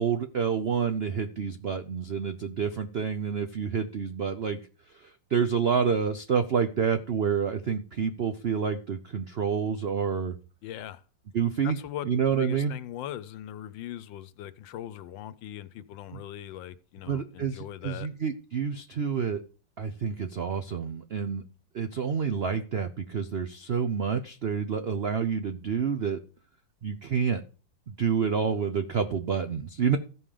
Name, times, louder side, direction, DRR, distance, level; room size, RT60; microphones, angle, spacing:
voice 1, 0.0-4.6 4.9-10.3 11.3-11.8 12.0-12.7 16.1-16.2 17.1-19.4 19.8-21.4 21.7-26.2 26.8-27.4 27.9-30.0, right 6 dB, 75° right, 0.5 m, -28 dB
voice 2, 10.6-11.0 11.6-18.1, left 11 dB, 85° left, 1.4 m, -40 dB
14.5 x 5.6 x 5.0 m
omnidirectional pair, 2.0 m